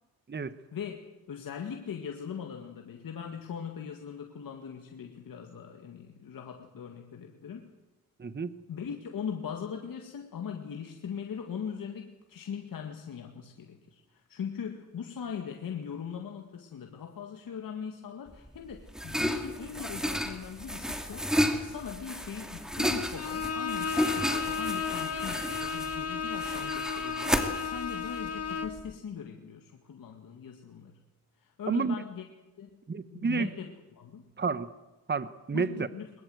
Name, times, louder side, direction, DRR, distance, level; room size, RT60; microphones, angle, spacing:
voice 1, 1.3-7.7 8.7-21.3 21.6-30.9 31.4-32.2 32.6-32.8 33.1-34.3 35.5-36.1, left 7 dB, 70° left, 3 dB, 2.1 m, -40 dB
voice 2, 8.2-8.5 31.7-32.0 32.9-33.5 34.4-34.7 35.1-35.9, right 4 dB, 30° right, 13 dB, 1.1 m, -30 dB
sound 1, 18.3-28.9, equal, ahead, 2.7 m, -32 dB
Bowed string instrument, 23.2-28.8, left 6 dB, 45° left, 2.0 m, -34 dB
21.5 x 21.0 x 8.0 m, 1.1 s
cardioid pair, 75°, 35 cm